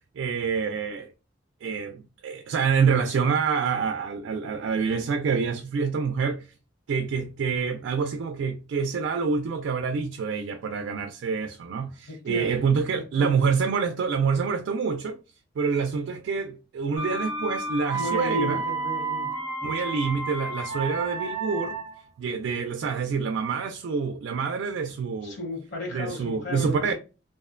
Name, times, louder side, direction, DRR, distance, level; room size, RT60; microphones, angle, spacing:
voice 1, 0.2-1.1 1.6-6.5 6.9-15.2 15.6-18.6 19.6-21.8 22.2-25.4 25.9-26.9, right 5 dB, 90° right, 0.3 m, -27 dB
voice 2, 12.1-12.5 12.9-13.4 17.9-19.3 19.7-19.8 25.2-26.9, left 1 dB, 65° left, 0.8 m, -34 dB
sound 1, 17.0-22.1, right 3 dB, 15° right, 0.5 m, -31 dB
2.5 x 2.1 x 2.4 m
head